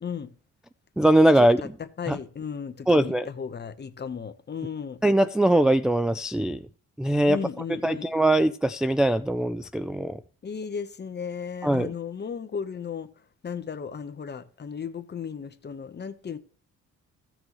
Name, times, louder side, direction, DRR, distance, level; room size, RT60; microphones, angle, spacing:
voice 1, 0.0-0.3 1.4-1.5 1.8-5.0 7.3-8.1 10.4-13.1 13.4-16.4, left 6 dB, 35° left, 1.0 m, -35 dB
voice 2, 1.0-1.6 2.1-2.2 2.9-3.3 5.0-6.6 7.0-7.4 7.8-10.2 11.6-11.9, right 1 dB, ahead, 0.3 m, -21 dB
15.5 x 6.1 x 3.1 m
cardioid pair, 90°, 30 cm